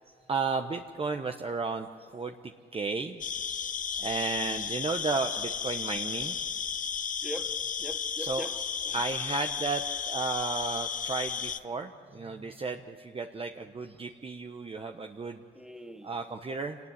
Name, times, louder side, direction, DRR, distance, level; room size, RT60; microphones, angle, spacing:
voice 1, 0.3-3.2 4.0-6.4 8.2-8.5 8.9-15.4 16.0-16.8, right 4 dB, 30° right, 5 dB, 1.0 m, -33 dB
sound 1, 3.2-11.6, left 7 dB, 40° left, 0.9 m, -34 dB
voice 2, 7.2-9.1 11.7-11.8 12.1-12.8 15.5-16.1, equal, ahead, 4 dB, 2.2 m, -44 dB
27.0 x 19.0 x 9.8 m, 2.3 s
cardioid pair, 90°, 20 cm